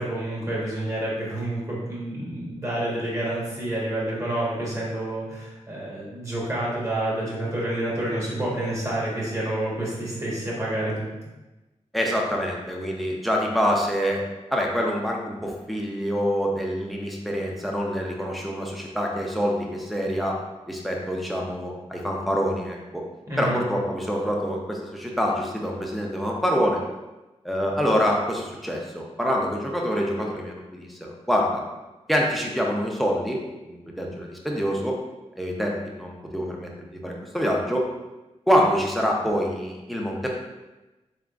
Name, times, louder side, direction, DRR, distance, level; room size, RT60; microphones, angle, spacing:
voice 1, 0.0-11.1 23.3-23.6, right 1 dB, 25° right, -6 dB, 1.4 m, -28 dB
voice 2, 11.9-14.2 14.5-20.4 20.7-23.0 23.4-26.8 27.4-31.6 32.1-35.0 35.4-37.9 38.5-40.3, equal, ahead, -1 dB, 0.7 m, -26 dB
3.6 x 3.5 x 2.5 m, 1.1 s
wide cardioid pair, 75°, 12 cm